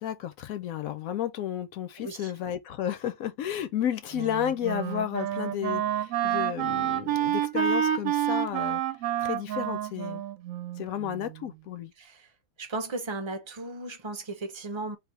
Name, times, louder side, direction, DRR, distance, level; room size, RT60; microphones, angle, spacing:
voice 1, 0.0-8.8 9.2-10.2 10.8-11.9, left 10 dB, 70° left, 1.0 m, -32 dB
voice 2, 2.0-2.3 12.0-12.3 12.6-15.0, right 2 dB, 25° right, 0.6 m, -36 dB
Wind instrument woodwind instrument, 4.1-11.3, right 10 dB, 65° right, 0.9 m, -29 dB
3.4 x 2.6 x 4.5 m
omnidirectional pair, 1.6 m